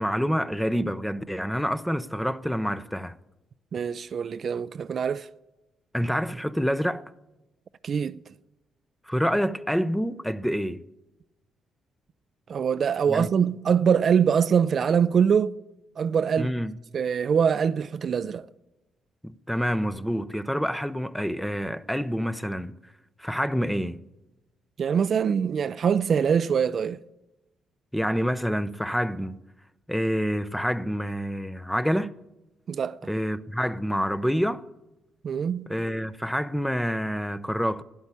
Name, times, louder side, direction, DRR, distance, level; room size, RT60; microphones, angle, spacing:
voice 1, 0.0-3.2 5.9-7.0 9.1-10.8 13.1-13.3 16.4-16.7 19.2-22.7 23.2-24.0 27.9-29.4 29.9-32.1 33.0-34.6 35.7-37.8, equal, ahead, 0.6 m, -27 dB
voice 2, 3.7-5.3 7.8-8.2 12.5-15.5 16.0-16.5 16.9-18.5 24.8-27.0 32.7-33.0 35.2-35.7, right 7 dB, 50° right, 0.4 m, -23 dB
12.5 x 11.0 x 8.3 m
cardioid pair, 90°, 0 cm